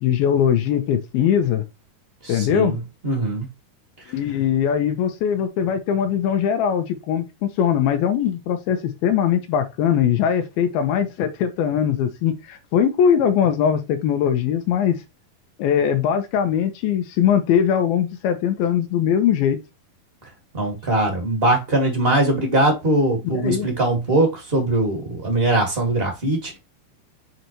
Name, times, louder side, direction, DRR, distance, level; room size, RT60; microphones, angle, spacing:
voice 1, 0.0-1.6 2.3-2.7 4.1-15.0 15.6-19.6 23.2-23.7, left 8 dB, 80° left, 2.6 m, -21 dB
voice 2, 2.2-2.8 3.0-3.4 20.5-26.6, right 2 dB, 20° right, 1.6 m, -21 dB
7.9 x 4.0 x 3.0 m
omnidirectional pair, 4.5 m